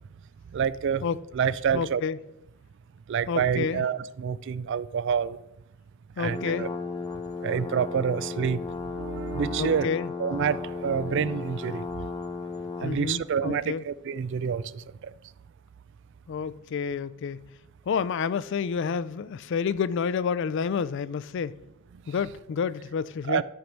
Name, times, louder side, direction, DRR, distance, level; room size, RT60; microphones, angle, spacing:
voice 1, 0.5-1.0 1.3-2.0 3.1-5.4 6.2-6.7 7.4-8.6 8.9-9.9 10.2-11.9 12.8-15.1 23.3-23.4, right 7 dB, 55° right, 0.3 m, -27 dB
voice 2, 1.7-2.2 3.3-3.9 6.2-6.7 9.6-10.1 12.8-13.8 16.3-17.4 17.9-21.6 22.1-23.4, left 6 dB, 55° left, 0.3 m, -29 dB
sound 1, 6.2-13.0, left 4 dB, 20° left, 0.7 m, -35 dB
12.0 x 4.6 x 5.3 m
head